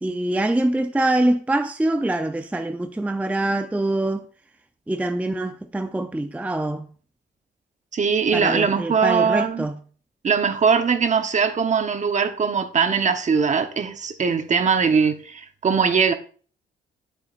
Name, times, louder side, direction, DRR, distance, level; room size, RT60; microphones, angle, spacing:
voice 1, 0.0-4.3 4.9-6.9 8.3-9.8, right 1 dB, 5° right, 0.5 m, -24 dB
voice 2, 7.9-9.7 10.2-16.1, right 6 dB, 35° right, 0.9 m, -21 dB
9.6 x 8.1 x 2.5 m
cardioid pair, 90°, 20 cm